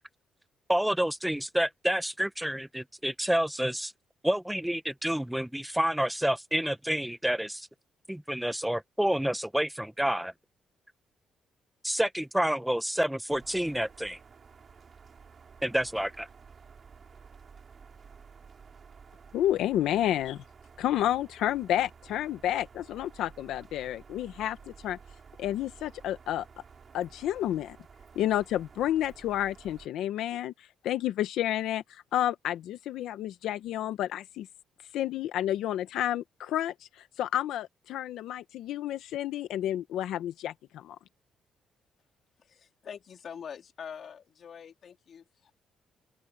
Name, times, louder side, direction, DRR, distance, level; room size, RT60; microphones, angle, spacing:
voice 1, 0.7-3.9 4.2-7.7 8.1-10.3 11.8-14.2 15.6-16.3, equal, 5° right, 0.8 m, -29 dB
sound 1, 13.3-29.9, right 5 dB, 45° right, 6.3 m, -53 dB
voice 2, 19.3-20.4 20.8-25.0 25.4-26.5 26.9-27.8 28.1-34.5 34.9-41.0, left 12 dB, 85° left, 1.0 m, -30 dB
voice 3, 42.4-45.6, left 7 dB, 55° left, 3.5 m, -45 dB
open air
cardioid pair, 90°, 0 cm